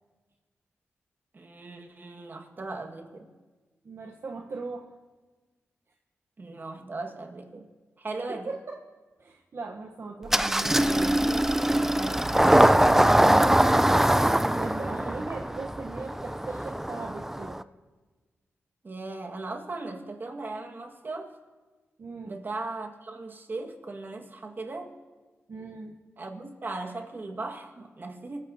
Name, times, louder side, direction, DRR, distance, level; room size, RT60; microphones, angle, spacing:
voice 1, 1.3-3.3 6.4-7.7 8.0-8.6 14.7-15.3 18.8-21.4 22.2-24.9 26.2-28.4, right 3 dB, 45° right, 2 dB, 1.7 m, -38 dB
voice 2, 3.8-4.9 8.3-8.8 9.2-13.6 14.5-17.6 22.0-22.3 25.5-25.9, right 3 dB, 60° right, 1 dB, 1.0 m, -39 dB
Engine starting, 10.3-17.6, right 1 dB, 10° right, 0.4 m, -22 dB
24.0 x 14.5 x 2.8 m, 1.3 s
cardioid pair, 75°, 5 cm